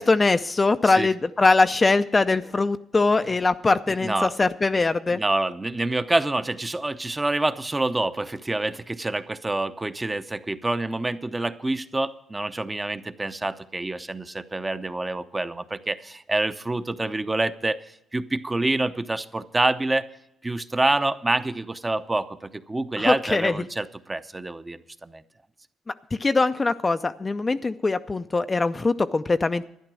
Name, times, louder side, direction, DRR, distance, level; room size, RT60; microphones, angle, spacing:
voice 1, 0.0-5.2 23.0-23.5 26.2-29.7, left 3 dB, 25° left, 10 dB, 0.5 m, -22 dB
voice 2, 0.8-1.1 4.0-4.3 5.1-17.8 18.1-20.1 20.4-25.2, right 2 dB, 20° right, 10 dB, 0.7 m, -27 dB
12.0 x 10.0 x 6.2 m, 0.77 s
cardioid pair, 90°, 0 cm